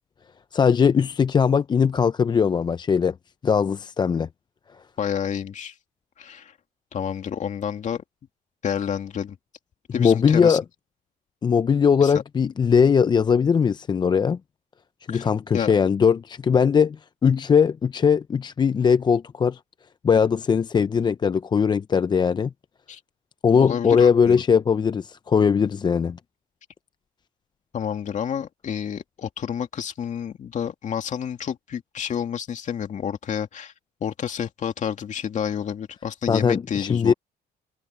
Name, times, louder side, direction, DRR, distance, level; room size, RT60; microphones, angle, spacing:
voice 1, 0.5-3.1 3.4-4.3 10.0-10.6 11.4-14.4 15.1-19.6 20.0-22.5 23.4-26.2 36.3-37.1, left 6 dB, 25° left, 0.4 m, -20 dB
voice 2, 5.0-5.7 6.2-6.5 6.9-8.0 8.6-9.4 9.9-10.6 12.0-12.1 15.1-15.3 15.5-15.7 22.9-23.0 23.6-24.4 27.7-33.7 34.0-37.1, left 8 dB, 45° left, 2.5 m, -29 dB
cardioid pair, 110°, 17 cm